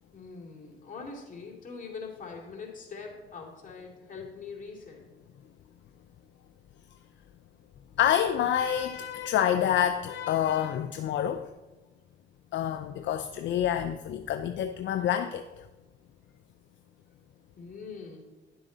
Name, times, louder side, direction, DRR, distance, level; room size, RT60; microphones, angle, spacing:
voice 1, 0.1-5.0 17.6-18.2, left 4 dB, 40° left, -1 dB, 2.8 m, -43 dB
voice 2, 8.0-11.5 12.5-15.6, left 10 dB, 70° left, 8 dB, 0.5 m, -27 dB
10.5 x 7.5 x 4.0 m, 1.1 s
cardioid pair, 90°, 20 cm